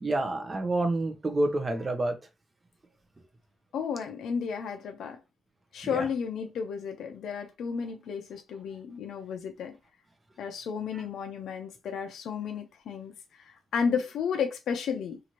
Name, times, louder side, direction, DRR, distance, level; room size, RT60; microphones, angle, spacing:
voice 1, 0.0-2.2 5.9-6.1 10.9-11.0, right 2 dB, 20° right, 0.6 m, -28 dB
voice 2, 3.7-5.2 5.7-9.8 10.4-15.2, left 6 dB, 70° left, 0.4 m, -33 dB
2.7 x 2.5 x 2.9 m
cardioid pair, 140°, 0 cm